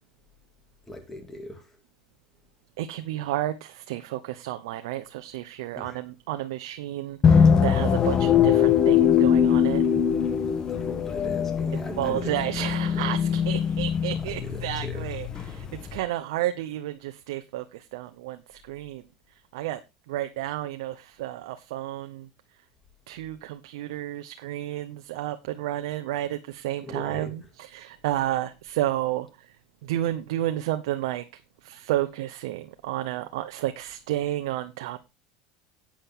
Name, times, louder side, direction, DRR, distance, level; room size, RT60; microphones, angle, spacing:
voice 1, 0.9-1.7 5.8-6.0 10.7-13.2 14.4-15.0 26.8-27.3, left 1 dB, 15° left, 2.7 m, -39 dB
voice 2, 2.8-9.8 12.0-19.0 19.3-19.8 20.1-22.3 23.1-29.6 29.8-35.0, right 14 dB, 85° right, 0.8 m, -31 dB
sound 1, 7.2-16.0, left 8 dB, 30° left, 1.1 m, -22 dB
10.0 x 8.8 x 3.7 m
supercardioid pair, 130°, 2 cm